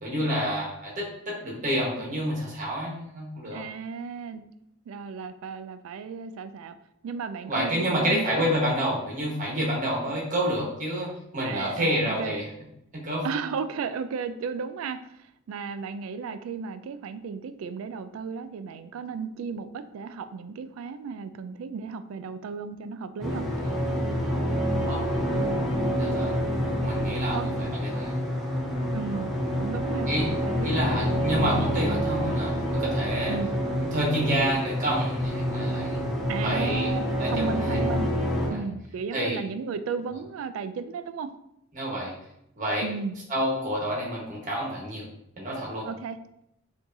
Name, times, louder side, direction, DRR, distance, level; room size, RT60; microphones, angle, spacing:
voice 1, 0.0-3.6 7.4-12.4 12.9-13.3 24.8-25.0 26.0-26.3 26.8-28.1 30.1-30.3 30.6-33.4 33.9-36.0 36.4-36.9 37.2-37.8 38.5-38.6 39.1-39.4 41.7-42.1 42.6-42.8 43.3-45.0 45.4-45.9, equal, 40° right, -4 dB, 1.3 m, -28 dB
voice 2, 3.5-4.4 4.9-6.7 7.0-8.2 11.4-12.4 13.2-23.5 27.3-27.5 28.9-31.0 33.3-33.6 36.3-38.1 38.5-41.3 42.8-43.2 45.9-46.2, right 5 dB, 75° right, 11 dB, 0.3 m, -34 dB
sound 1, 23.2-38.5, equal, ahead, 0.8 m, -27 dB
4.6 x 2.7 x 2.6 m, 0.79 s
head